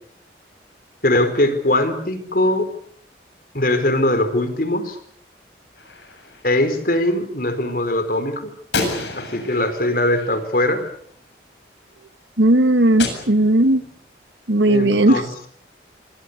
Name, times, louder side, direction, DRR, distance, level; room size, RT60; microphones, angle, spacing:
voice 1, 1.0-2.7 3.5-5.0 6.4-8.5 9.2-10.8 14.7-15.2, left 1 dB, 50° left, 10 dB, 4.5 m, -20 dB
Gunshot gunfire, 5.8-6.8 8.7-11.1 13.0-14.0, left 3 dB, 75° left, 7.7 m, -30 dB
voice 2, 12.4-13.8 14.5-15.2, right 1 dB, 90° right, 10 dB, 1.9 m, -16 dB
28.0 x 24.0 x 6.9 m, 0.63 s
head